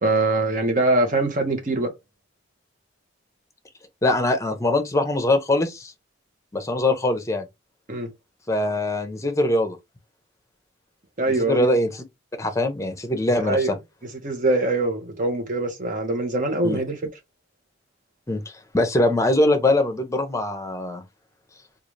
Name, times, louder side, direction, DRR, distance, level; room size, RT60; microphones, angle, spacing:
voice 1, 0.0-1.9 7.9-8.1 11.2-11.7 13.4-13.7 14.2-17.0, right 2 dB, 45° right, 1.1 m, -23 dB
voice 2, 4.0-5.9 6.5-7.4 8.5-9.8 11.4-12.0 12.4-13.7 16.6-16.8 18.3-18.4 18.7-21.0, left 1 dB, 15° left, 0.7 m, -22 dB
3.8 x 2.4 x 3.2 m
head